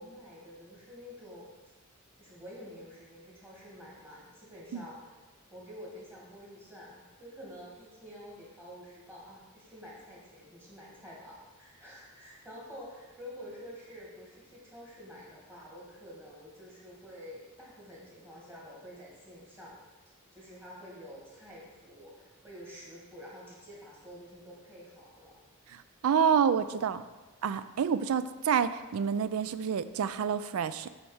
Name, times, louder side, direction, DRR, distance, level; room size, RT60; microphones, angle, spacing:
voice 1, 0.0-1.5 2.2-5.0 5.5-19.7 20.3-25.4, equal, 10° right, -5 dB, 2.0 m, -48 dB
voice 2, 25.7-27.0 27.4-30.9, right 7 dB, 70° right, 13 dB, 0.4 m, -28 dB
7.8 x 4.1 x 4.9 m, 1.2 s
head